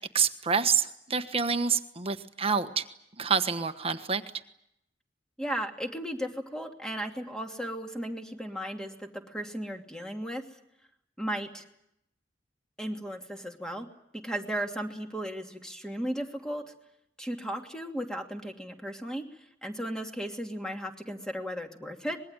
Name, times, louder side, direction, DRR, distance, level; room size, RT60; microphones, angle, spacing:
voice 1, 0.1-2.9 3.2-4.2, right 6 dB, 35° right, 8 dB, 1.3 m, -27 dB
voice 2, 5.4-10.4 11.2-11.6 12.8-13.9 14.2-16.6 17.2-19.3 19.6-22.2, equal, 5° left, 3 dB, 2.6 m, -35 dB
25.5 x 21.5 x 9.1 m, 0.78 s
head